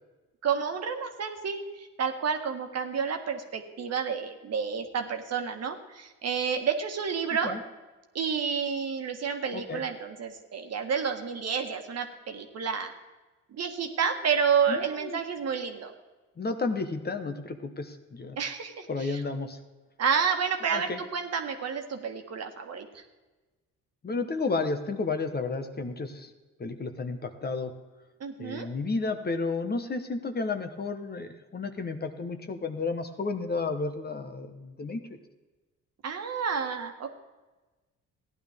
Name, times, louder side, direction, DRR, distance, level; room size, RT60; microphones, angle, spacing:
voice 1, 0.4-7.6 8.1-12.9 13.5-15.9 18.3-19.2 20.0-23.0 28.2-28.7 36.0-37.1, right 6 dB, 55° right, 5 dB, 1.6 m, -30 dB
voice 2, 14.7-15.2 16.4-18.4 18.9-19.6 20.7-21.0 24.0-26.3 26.6-27.7 28.4-35.0, left 3 dB, 30° left, 7 dB, 1.2 m, -32 dB
15.0 x 10.5 x 3.6 m, 1.2 s
cardioid pair, 90°, 30 cm